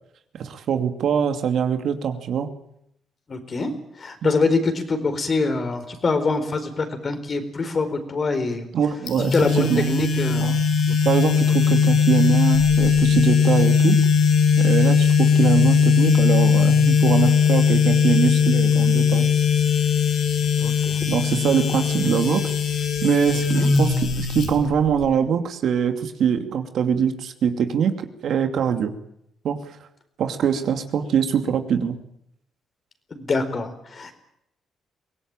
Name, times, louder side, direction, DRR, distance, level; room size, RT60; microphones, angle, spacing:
voice 1, 0.3-2.5 4.2-4.3 8.7-9.8 10.4-10.6 11.0-14.0 14.6-19.3 21.1-22.5 23.0-27.9 28.2-28.9 29.4-29.6 30.2-32.0, right 7 dB, 65° right, 7 dB, 2.6 m, -23 dB
voice 2, 3.3-3.7 4.0-8.7 9.3-10.6 10.9-11.0 20.6-21.2 21.7-21.9 23.5-23.7 33.1-34.2, left 3 dB, 40° left, 8 dB, 4.5 m, -25 dB
sound 1, 9.1-25.0, left 6 dB, 70° left, 6.1 m, -19 dB
24.0 x 18.0 x 9.0 m, 0.76 s
cardioid pair, 90°, 0 cm